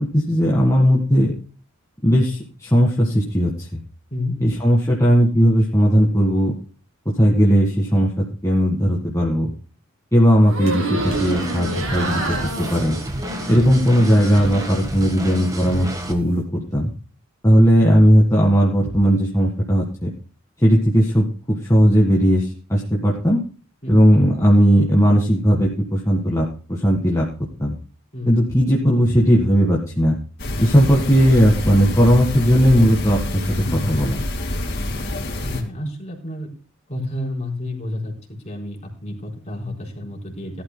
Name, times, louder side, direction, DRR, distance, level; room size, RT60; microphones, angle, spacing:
voice 1, 0.0-1.3 2.0-3.5 4.4-6.5 7.2-9.5 10.1-13.0 13.5-16.9 17.4-20.1 20.6-23.4 23.9-27.3 27.6-27.7 28.3-30.2 30.6-33.5 33.7-34.2, equal, 15° left, -3 dB, 1.7 m, -17 dB
voice 2, 4.1-4.4 17.5-17.8 23.8-24.1 28.1-28.5 35.4-36.5 36.9-40.6, left 1 dB, 35° left, -1 dB, 4.1 m, -30 dB
sound 1, 10.4-14.9 15.2-16.0, right 2 dB, 70° right, 7.3 m, -29 dB
sound 2, 11.0-16.1, right 1 dB, 15° right, 1.4 m, -30 dB
sound 3, 30.4-35.6, left 1 dB, 55° left, 2.2 m, -26 dB
18.5 x 12.0 x 2.2 m, 0.38 s
head